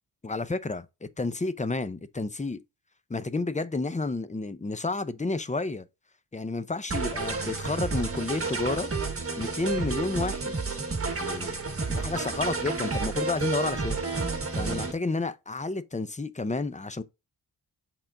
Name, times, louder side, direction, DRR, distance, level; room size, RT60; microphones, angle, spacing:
voice 1, 0.2-2.6 3.1-5.9 6.3-8.9 9.4-10.5 11.0-11.6 11.9-14.0 14.5-17.0, left 3 dB, 20° left, 0.6 m, -31 dB
sound 1, 6.9-14.9, right 3 dB, 35° right, 1.6 m, -30 dB
6.8 x 3.8 x 3.8 m
wide cardioid pair, 110°, 41 cm